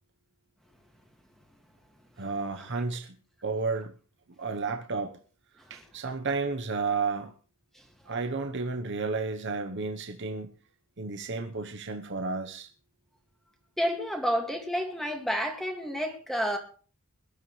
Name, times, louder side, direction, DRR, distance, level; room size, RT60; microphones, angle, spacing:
voice 1, 2.2-3.2 3.4-3.9 4.4-5.2 5.7-7.3 8.1-10.5 11.0-12.7, right 4 dB, 55° right, 1.0 m, -32 dB
voice 2, 13.8-16.6, equal, ahead, 2.1 m, -30 dB
21.5 x 12.0 x 3.2 m
head